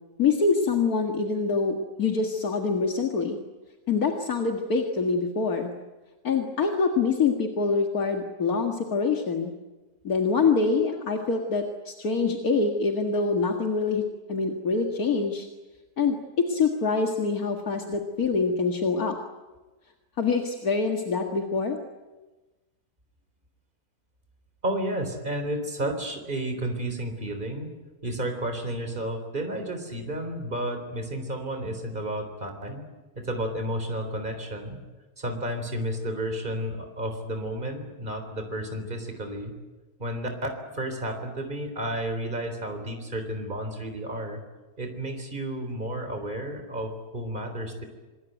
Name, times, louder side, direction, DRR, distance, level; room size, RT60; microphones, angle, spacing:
voice 1, 0.2-3.4 3.9-5.7 6.2-9.5 10.0-14.0 14.3-15.5 16.0-19.2 20.2-21.8, left 4 dB, 70° left, 2 dB, 2.3 m, -25 dB
voice 2, 24.6-27.7 28.0-32.8 33.2-34.8 35.2-39.5 40.0-40.5 40.7-44.4 44.8-47.8, right 1 dB, 30° right, 5 dB, 4.0 m, -32 dB
26.0 x 21.5 x 9.3 m, 1.2 s
omnidirectional pair, 1.6 m